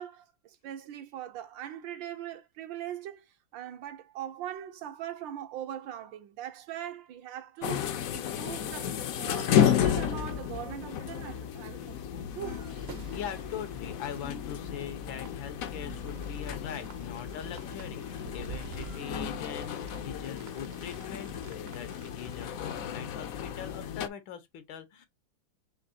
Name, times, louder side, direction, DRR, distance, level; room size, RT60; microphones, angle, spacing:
voice 1, 0.0-3.3 3.5-12.7, right 11 dB, 75° right, 1.5 m, -41 dB
sound 1, 7.6-24.1, left 9 dB, 70° left, 0.8 m, -33 dB
sound 2, 12.4-23.1, right 5 dB, 50° right, 0.7 m, -49 dB
voice 2, 13.1-25.1, left 8 dB, 85° left, 1.8 m, -42 dB
5.8 x 3.1 x 2.6 m
omnidirectional pair, 2.1 m